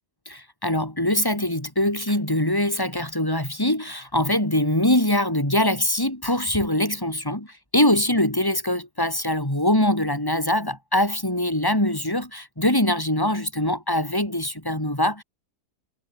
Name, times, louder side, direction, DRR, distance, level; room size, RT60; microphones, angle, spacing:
voice 1, 0.3-15.2, left 1 dB, 15° left, 6.0 m, -23 dB
omnidirectional pair, 1.7 m